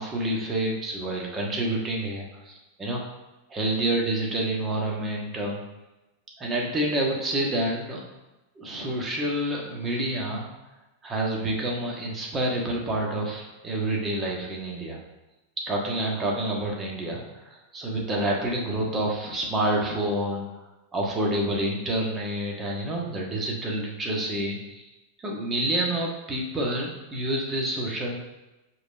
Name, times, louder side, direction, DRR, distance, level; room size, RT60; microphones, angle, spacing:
voice 1, 0.0-3.1 3.5-5.6 6.4-8.0 8.5-10.5 11.0-15.0 15.7-20.6 20.9-24.8 25.2-28.2, right 1 dB, 20° right, -1 dB, 1.5 m, -28 dB
5.2 x 4.2 x 5.3 m, 1.0 s
figure-of-eight pair, 90°, 0 cm